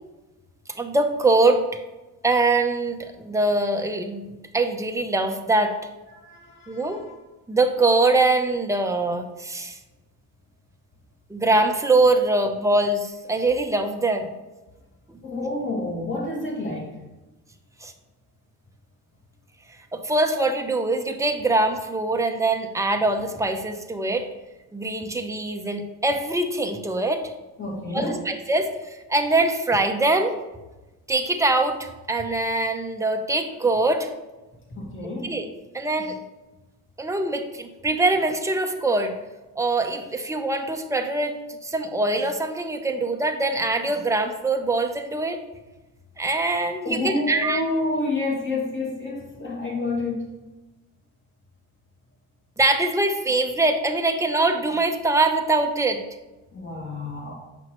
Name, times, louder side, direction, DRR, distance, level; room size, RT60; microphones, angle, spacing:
voice 1, 0.8-1.6 2.2-5.8 6.7-7.0 7.5-9.8 11.3-14.3 17.8-17.9 19.9-24.3 24.7-27.2 27.9-30.4 31.1-34.1 35.2-35.5 35.7-36.2 37.0-39.1 39.6-41.3 41.6-45.4 46.2-47.6 52.6-56.0, right 2 dB, 10° right, 4 dB, 0.8 m, -23 dB
voice 2, 6.1-7.1 12.3-12.4 15.2-16.9 27.6-28.2 34.7-35.3 46.8-50.3 56.5-57.3, left 2 dB, 30° left, -2 dB, 2.3 m, -29 dB
7.6 x 5.6 x 3.1 m, 1.1 s
supercardioid pair, 90°, 40 cm